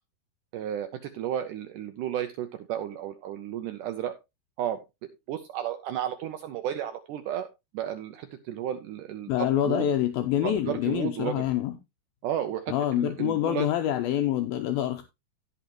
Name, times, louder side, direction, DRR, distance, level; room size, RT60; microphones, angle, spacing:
voice 1, 0.5-4.1 4.6-4.8 5.3-7.5 7.7-9.9 10.4-11.4 12.2-13.7, right 10 dB, 85° right, 1.8 m, -33 dB
voice 2, 9.3-11.7 12.7-15.0, left 11 dB, 75° left, 2.3 m, -26 dB
17.0 x 5.7 x 3.0 m
omnidirectional pair, 4.6 m